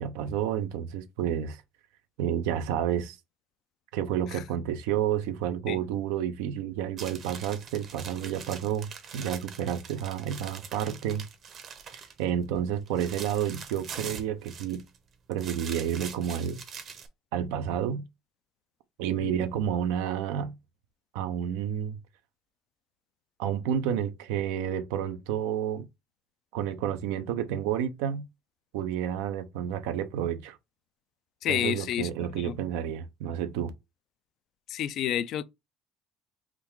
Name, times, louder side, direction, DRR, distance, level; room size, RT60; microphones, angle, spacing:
voice 1, 0.0-1.6 2.2-3.2 3.9-11.3 12.2-14.8 15.3-16.6 17.3-18.0 19.0-20.5 21.1-22.0 23.4-25.9 26.5-28.3 28.7-30.6 31.5-33.7, right 9 dB, 90° right, 0.5 m, -30 dB
sound 1, 7.0-12.2 12.6-15.0 15.3-17.1, right 6 dB, 50° right, 0.8 m, -43 dB
voice 2, 31.4-32.1 32.4-32.5 34.7-35.4, left 11 dB, 60° left, 0.3 m, -29 dB
3.7 x 2.3 x 4.5 m
supercardioid pair, 100°, 0 cm